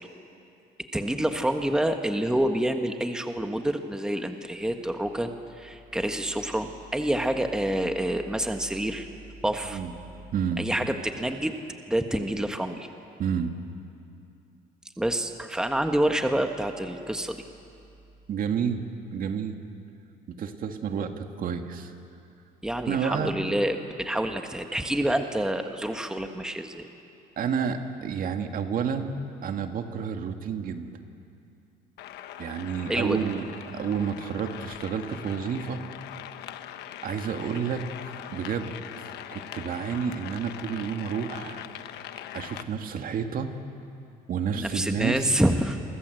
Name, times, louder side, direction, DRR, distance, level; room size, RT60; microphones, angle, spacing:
voice 1, 0.9-9.1 9.4-9.8 10.6-11.6 11.9-12.9 15.0-17.4 22.6-26.9 32.9-33.2 44.5-45.8, right 1 dB, 5° right, 6 dB, 1.5 m, -27 dB
voice 2, 10.3-10.6 13.2-13.5 18.3-18.8 19.1-19.6 20.4-22.0 22.9-23.3 27.4-30.9 32.4-35.8 37.0-38.8 39.3-41.7 42.3-43.5 44.3-45.3, right 7 dB, 55° right, 5 dB, 2.1 m, -30 dB
sound 1, 32.0-42.6, left 11 dB, 80° left, 1.3 m, -41 dB
29.0 x 23.5 x 7.9 m, 2.6 s
cardioid pair, 110°, 17 cm